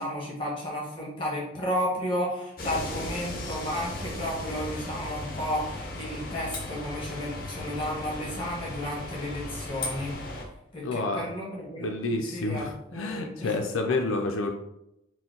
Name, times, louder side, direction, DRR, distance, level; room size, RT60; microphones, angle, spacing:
voice 1, 0.0-10.2 10.7-13.6, equal, 25° left, -4 dB, 1.2 m, -33 dB
sound 1, 2.6-10.5, left 2 dB, 45° left, 0.6 m, -36 dB
voice 2, 10.8-11.3 11.8-14.5, left 2 dB, 90° left, 3 dB, 0.4 m, -29 dB
4.3 x 2.2 x 3.8 m, 0.83 s
head